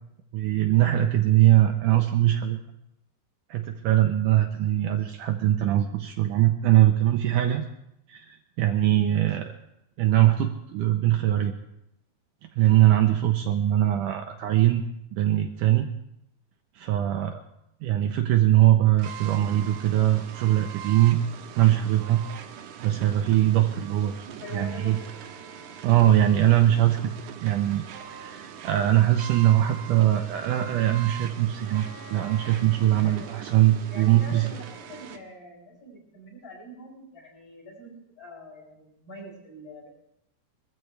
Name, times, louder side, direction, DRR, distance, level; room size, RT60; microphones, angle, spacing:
voice 1, 0.3-2.7 3.5-7.7 8.1-9.5 10.0-11.5 12.6-15.9 16.8-17.4 17.8-21.2 21.5-22.2 22.8-24.3 24.5-25.0 25.8-27.1 27.4-34.5, right 13 dB, 90° right, 4 dB, 1.8 m, -22 dB
sound 1, 19.0-35.2, right 8 dB, 70° right, 2.1 m, -42 dB
voice 2, 24.4-25.1 33.0-33.3 33.9-39.9, left 1 dB, 30° left, -3 dB, 7.6 m, -44 dB
Bowed string instrument, 31.5-35.2, left 3 dB, 5° left, 1.7 m, -51 dB
23.0 x 14.0 x 3.3 m, 0.79 s
omnidirectional pair, 4.6 m